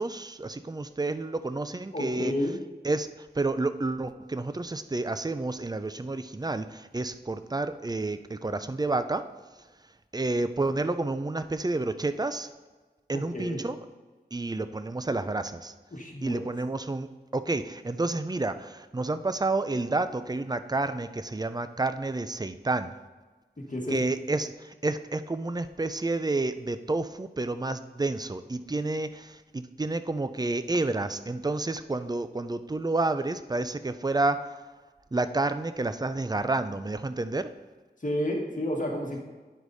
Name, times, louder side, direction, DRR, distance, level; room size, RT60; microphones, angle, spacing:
voice 1, 0.0-2.3 2.8-9.3 10.1-12.5 13.1-13.8 14.3-15.7 16.2-22.9 23.9-34.6 35.1-37.5, right 2 dB, 25° right, 11 dB, 0.4 m, -30 dB
voice 2, 1.9-2.6 13.1-13.7 15.9-16.5 23.7-24.0 38.0-39.2, left 1 dB, 50° left, -1 dB, 1.5 m, -31 dB
10.0 x 4.8 x 4.0 m, 1.3 s
wide cardioid pair, 50°, 17 cm